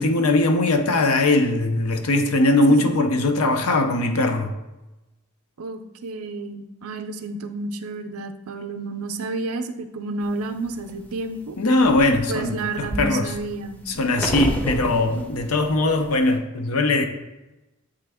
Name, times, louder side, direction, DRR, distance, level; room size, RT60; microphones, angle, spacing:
voice 1, 0.0-4.6 11.6-13.3 13.9-17.1, left 2 dB, 70° left, 6 dB, 0.7 m, -20 dB
voice 2, 5.6-11.6 12.3-13.8, right 3 dB, 70° right, 7 dB, 0.5 m, -30 dB
sound 1, 10.3-11.1 11.6-16.4, equal, 5° left, 0.6 m, -31 dB
8.1 x 3.3 x 3.5 m, 1.0 s
head